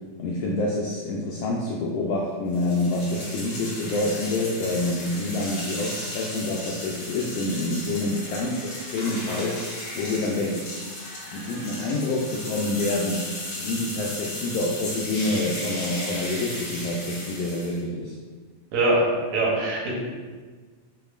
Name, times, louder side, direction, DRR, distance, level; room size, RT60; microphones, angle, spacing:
voice 1, 0.2-9.6 9.9-10.8 11.3-13.3 13.6-18.2, left 2 dB, 85° left, -3 dB, 1.4 m, -27 dB
sound 1, 2.5-17.8, left 1 dB, 45° left, 2.0 m, -35 dB
voice 2, 18.7-19.1 19.3-19.9, right 2 dB, 80° right, -3 dB, 2.3 m, -22 dB
6.6 x 2.9 x 2.4 m, 1.4 s
omnidirectional pair, 3.3 m